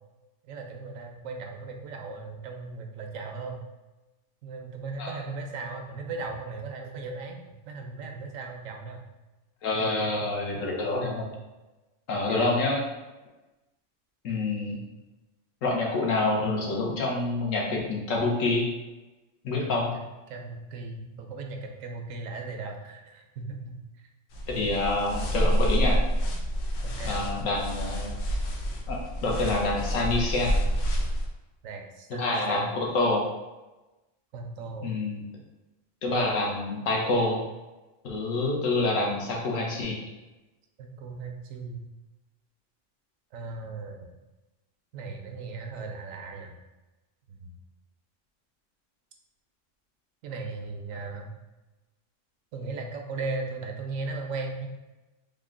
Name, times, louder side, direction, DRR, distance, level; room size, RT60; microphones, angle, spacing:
voice 1, 0.4-3.6 4.4-9.0 12.3-12.6 19.5-20.0 20.3-23.8 26.8-27.3 31.6-32.7 34.3-34.9 40.8-41.8 43.3-44.1 44.9-46.6 47.3-47.5 50.2-51.3 52.5-54.7, right 3 dB, 85° right, 3 dB, 1.0 m, -37 dB
voice 2, 9.6-11.3 12.1-12.8 14.2-14.8 15.6-18.7 19.4-19.9 24.5-26.0 27.0-28.1 28.9-30.6 32.2-33.2 34.8-35.2 36.0-37.4 38.0-40.0, left 2 dB, 90° left, -1 dB, 1.2 m, -27 dB
sound 1, 24.3-31.3, equal, 75° left, 0.9 m, -28 dB
3.5 x 2.2 x 3.6 m, 1.1 s
omnidirectional pair, 1.3 m